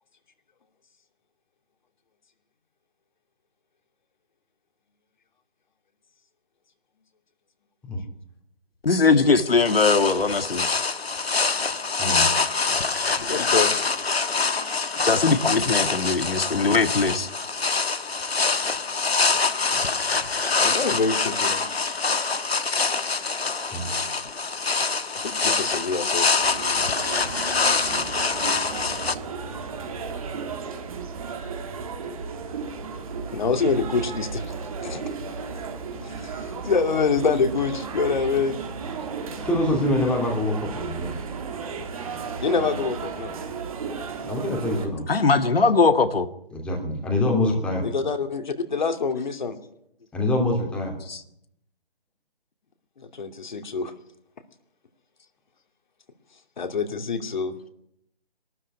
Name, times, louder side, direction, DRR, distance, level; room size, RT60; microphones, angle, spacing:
voice 1, 8.8-10.7 15.1-17.3 45.1-46.3 51.1-51.2, left 4 dB, 70° left, 8 dB, 1.9 m, -20 dB
sound 1, 9.6-29.1, left 4 dB, 90° left, 1.5 m, -25 dB
voice 2, 13.2-13.7 20.6-21.6 25.1-26.3 33.3-34.5 34.8-35.4 36.0-38.6 42.4-43.4 47.8-49.6 53.0-53.9 56.6-57.7, left 5 dB, 50° left, 6 dB, 2.7 m, -26 dB
sound 2, 26.4-44.9, right 5 dB, 35° right, 3.1 m, -34 dB
voice 3, 39.4-41.1 44.2-45.0 46.5-47.8 50.1-50.9, left 1 dB, 5° left, -1 dB, 2.8 m, -25 dB
23.0 x 13.0 x 9.8 m, 0.75 s
figure-of-eight pair, 160°, 30 cm